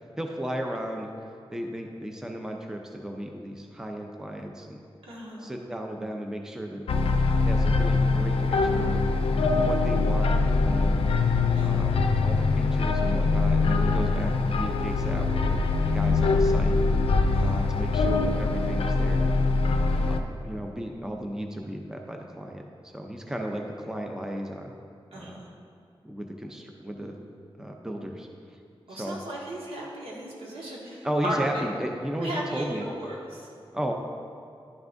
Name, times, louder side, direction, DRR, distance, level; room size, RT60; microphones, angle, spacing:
voice 1, 0.2-1.1 1.5-4.8 5.4-6.8 7.4-9.0 9.5-11.0 11.6-15.6 15.9-16.8 17.4-19.4 20.1-24.7 25.1-25.4 26.0-27.1 27.6-28.6 28.9-29.2 31.0-32.9 33.7-33.9, equal, 5° right, 2 dB, 0.5 m, -35 dB
voice 2, 5.0-5.5 11.5-12.0 17.3-17.8 25.1-25.5 28.9-31.6 32.2-33.4, right 1 dB, 85° right, -5 dB, 1.6 m, -36 dB
sound 1, 6.9-20.2, left 3 dB, 90° left, 0.4 m, -23 dB
11.0 x 5.8 x 2.6 m, 2.6 s
wide cardioid pair, 125°, 10 cm